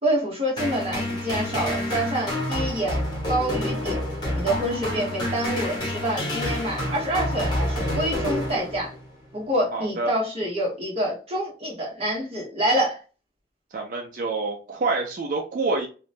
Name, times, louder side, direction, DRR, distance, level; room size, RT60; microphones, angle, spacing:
voice 1, 0.0-3.0 3.3-4.0 4.3-8.9 9.3-13.0, right 1 dB, 35° right, -3 dB, 1.1 m, -27 dB
sound 1, 0.6-9.1, left 1 dB, 25° left, 0.9 m, -28 dB
voice 2, 9.7-10.1 13.7-15.9, right 3 dB, 50° right, 0 dB, 0.4 m, -27 dB
2.8 x 2.1 x 2.5 m, 0.35 s
head